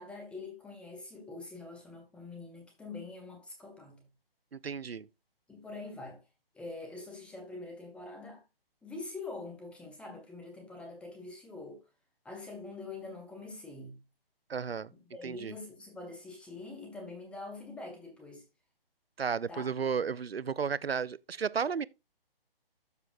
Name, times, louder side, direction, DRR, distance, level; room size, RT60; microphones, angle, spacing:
voice 1, 0.0-4.0 5.5-6.2 6.5-8.4 8.8-11.8 12.2-14.0 15.1-18.4 19.5-19.7, left 3 dB, 5° left, 1.6 m, -44 dB
voice 2, 4.6-5.1 14.5-14.9 15.2-15.5 19.2-21.8, right 6 dB, 90° right, 0.5 m, -33 dB
13.0 x 5.0 x 2.5 m
figure-of-eight pair, 140°, 29 cm